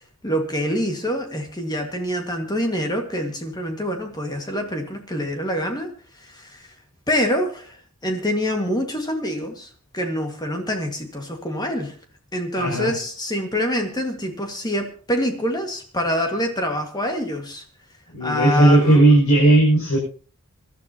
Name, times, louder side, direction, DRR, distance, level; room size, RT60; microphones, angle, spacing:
voice 1, 0.2-5.9 6.2-6.7 7.1-7.8 8.0-12.0 12.3-17.6 18.2-19.0, equal, 20° left, 4 dB, 2.0 m, -26 dB
voice 2, 12.5-12.9 18.1-20.0, right 1 dB, 75° left, -5 dB, 6.7 m, -16 dB
26.0 x 12.0 x 3.0 m, 0.39 s
head